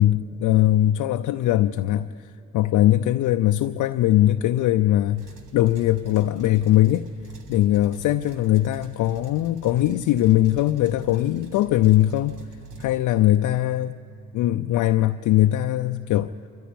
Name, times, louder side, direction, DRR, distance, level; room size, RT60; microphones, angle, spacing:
voice 1, 0.0-2.1 2.5-5.3 5.5-7.1 7.5-12.4 12.8-14.0 14.3-16.3, left 14 dB, 65° left, 0.5 m, -20 dB
sound 1, 5.2-12.9, right 4 dB, 75° right, 1.6 m, -45 dB
26.0 x 14.0 x 8.6 m
hypercardioid pair, 45°, 32 cm